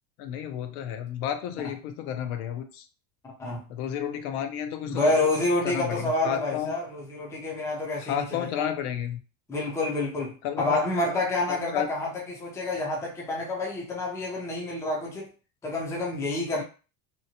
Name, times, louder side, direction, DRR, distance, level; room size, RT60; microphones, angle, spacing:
voice 1, 0.2-2.9 3.7-5.1 5.6-6.7 8.0-9.2 10.4-10.8 11.5-11.9, left 9 dB, 65° left, 0.6 m, -31 dB
voice 2, 4.9-8.7 9.5-15.3 15.6-16.6, left 2 dB, 5° left, 0.4 m, -28 dB
2.8 x 2.1 x 2.8 m
supercardioid pair, 125°, 47 cm